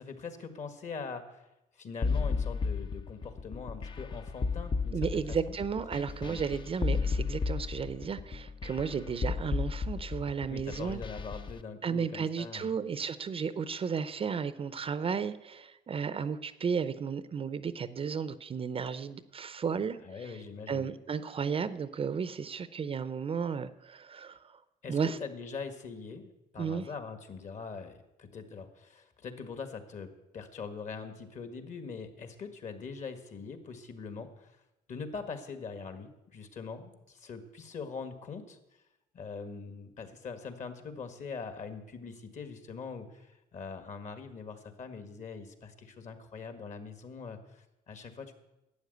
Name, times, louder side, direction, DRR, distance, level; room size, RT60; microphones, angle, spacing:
voice 1, 0.0-1.4 1.8-5.6 6.2-6.4 10.5-12.7 20.0-20.9 24.8-34.5 34.9-38.6 39.1-48.3, left 5 dB, 45° left, 8 dB, 1.8 m, -42 dB
sound 1, 2.0-11.5, left 4 dB, 30° left, 0.7 m, -33 dB
voice 2, 4.9-11.0 11.8-20.3 20.7-24.6 24.9-25.2 26.6-26.9, right 6 dB, 35° right, 14 dB, 0.6 m, -34 dB
12.5 x 8.9 x 8.0 m, 0.94 s
cardioid pair, 110°, 17 cm